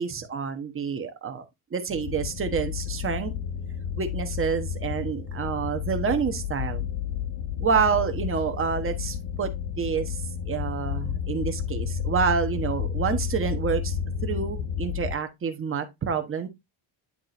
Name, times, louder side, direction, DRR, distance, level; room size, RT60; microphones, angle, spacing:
voice 1, 0.0-1.4 1.7-3.3 4.0-6.8 7.6-9.5 9.8-14.0 14.2-16.5, right 6 dB, 25° right, 1.2 m, -28 dB
sound 1, 1.9-15.1, left 8 dB, 75° left, 1.5 m, -31 dB
9.9 x 3.8 x 4.2 m
cardioid pair, 170°, 48 cm